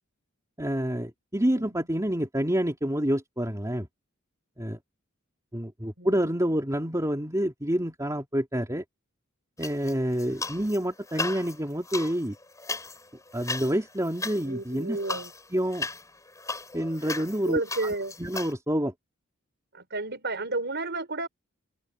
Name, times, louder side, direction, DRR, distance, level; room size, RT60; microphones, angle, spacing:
voice 1, 0.6-3.9 4.6-4.8 5.5-8.8 9.6-12.4 13.3-15.0 15.5-15.9 16.7-17.6 18.2-18.9, equal, 15° right, 3.3 m, -28 dB
voice 2, 6.0-6.3 14.4-15.3 17.4-18.2 19.7-21.3, right 2 dB, 55° right, 5.1 m, -31 dB
sound 1, 9.6-10.8 11.1-18.5, left 3 dB, 15° left, 4.8 m, -36 dB
head